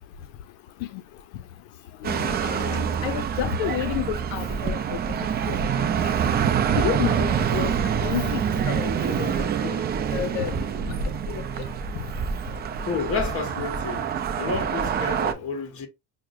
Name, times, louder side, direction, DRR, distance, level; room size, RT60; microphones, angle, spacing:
voice 1, 2.0-5.0 5.4-6.1 6.7-7.7 8.0-9.8 10.1-10.5 11.3-11.4, left 13 dB, 85° left, 0.6 m, -31 dB
sound 1, 2.0-15.3, right 7 dB, 25° right, 0.4 m, -26 dB
voice 2, 12.9-14.1 14.3-15.9, left 5 dB, 35° left, 1.2 m, -30 dB
5.8 x 2.1 x 2.4 m
cardioid pair, 120°, 38 cm